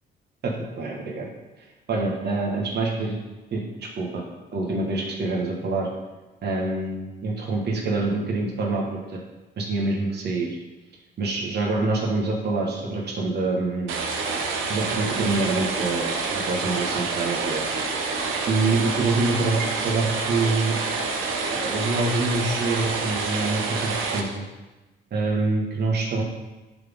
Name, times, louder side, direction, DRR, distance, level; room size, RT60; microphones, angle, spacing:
voice 1, 0.4-1.3 1.9-3.2 3.5-4.2 4.5-5.9 6.4-9.2 9.6-10.6 11.2-13.9 14.7-16.2 16.5-17.6 18.5-20.8 21.5-24.4 25.1-26.2, right 3 dB, 55° right, -1 dB, 1.5 m, -26 dB
sound 1, 13.9-24.2, right 4 dB, 90° right, 0.9 m, -27 dB
10.5 x 4.2 x 3.6 m, 1.1 s
cardioid pair, 90°, 20 cm